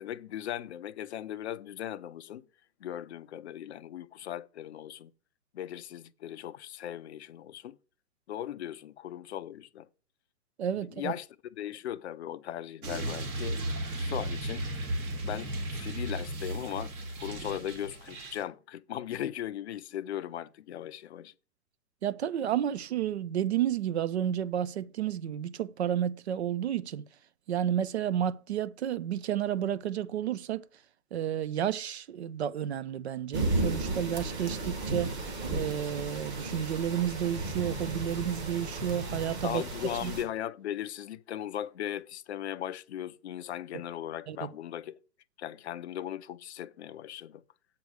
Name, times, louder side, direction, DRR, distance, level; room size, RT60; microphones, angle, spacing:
voice 1, 0.0-2.4 2.8-5.1 5.5-7.7 8.3-9.9 11.0-11.3 11.6-13.6 14.0-14.6 15.2-16.9 17.2-21.3 39.4-45.0 45.4-47.4, left 11 dB, 45° left, 0.5 m, -38 dB
voice 2, 10.6-11.1 22.0-27.0 27.5-30.6 31.1-35.1 35.5-39.6 40.0-40.1 44.3-44.5, right 10 dB, 45° right, 0.5 m, -31 dB
sound 1, 12.8-18.4, right 1 dB, 60° right, 3.2 m, -35 dB
sound 2, 33.3-40.2, right 2 dB, 20° right, 2.1 m, -34 dB
8.3 x 4.8 x 6.4 m
hypercardioid pair, 150°, 49 cm